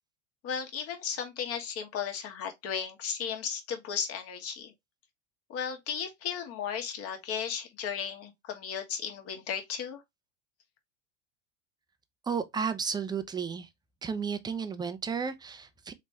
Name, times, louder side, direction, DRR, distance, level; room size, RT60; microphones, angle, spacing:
voice 1, 0.4-4.7 5.5-10.0, left 7 dB, 40° left, 1.6 m, -35 dB
voice 2, 12.3-13.7 14.0-15.9, right 6 dB, 10° right, 0.6 m, -33 dB
4.1 x 3.2 x 3.4 m
hypercardioid pair, 85°, 36 cm